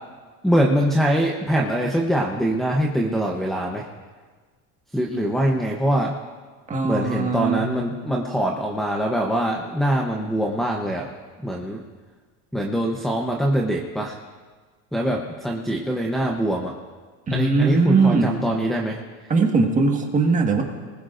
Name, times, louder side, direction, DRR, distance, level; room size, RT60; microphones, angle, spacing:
voice 1, 0.4-3.9 4.9-6.1 6.8-11.1 11.4-11.8 12.5-14.2 14.9-16.7 17.3-19.0, right 1 dB, ahead, 0 dB, 0.9 m, -23 dB
voice 2, 6.7-7.7 17.3-18.4 19.3-20.6, right 4 dB, 20° right, 2 dB, 1.7 m, -20 dB
27.0 x 20.0 x 2.6 m, 1.4 s
cardioid pair, 155°, 39 cm